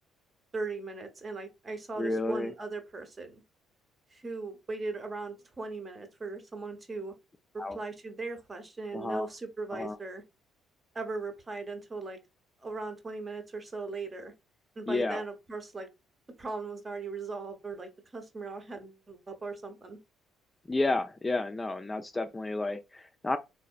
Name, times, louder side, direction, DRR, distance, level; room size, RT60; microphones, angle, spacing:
voice 1, 0.5-3.4 4.1-7.1 7.5-10.2 10.9-12.2 12.6-14.3 14.8-15.9 16.4-20.0, right 3 dB, 30° right, 0.9 m, -38 dB
voice 2, 2.0-2.5 7.6-7.8 8.9-9.3 9.7-10.0 14.9-15.2 20.7-23.4, left 2 dB, 20° left, 0.4 m, -31 dB
3.9 x 2.8 x 2.3 m
figure-of-eight pair, 45°, 0 cm